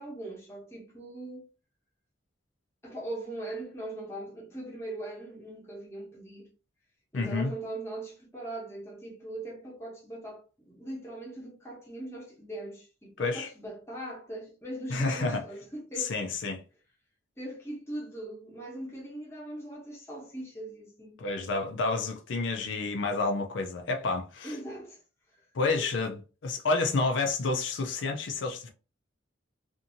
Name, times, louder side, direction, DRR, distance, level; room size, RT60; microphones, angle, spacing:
voice 1, 0.0-1.5 2.8-6.5 7.1-16.1 17.4-21.2 24.4-25.0 25.3-25.9, right 1 dB, 15° left, 0.9 m, -40 dB
voice 2, 7.1-7.5 13.2-13.5 14.9-15.4 16.0-16.6 21.2-24.5 25.5-28.7, left 3 dB, 70° left, 0.4 m, -29 dB
2.6 x 2.5 x 2.6 m
head